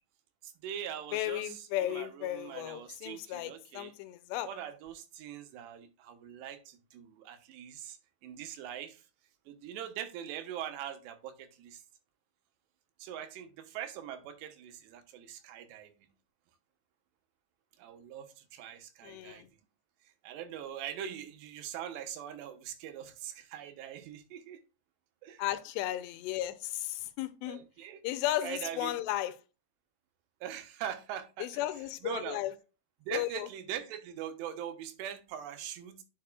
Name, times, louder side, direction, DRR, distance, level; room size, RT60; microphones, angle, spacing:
voice 1, 0.4-3.9 4.4-9.1 9.5-11.8 13.0-16.1 17.8-19.5 20.0-24.6 25.2-25.4 27.5-28.0 28.4-28.9 30.4-31.5 32.0-32.4 33.0-36.0, right 10 dB, 85° right, 3.1 m, -42 dB
voice 2, 1.1-4.5 19.0-19.5 25.4-27.6 28.0-29.3 31.4-32.5 33.1-33.5, left 14 dB, 85° left, 2.8 m, -35 dB
10.0 x 5.3 x 2.3 m
omnidirectional pair, 4.8 m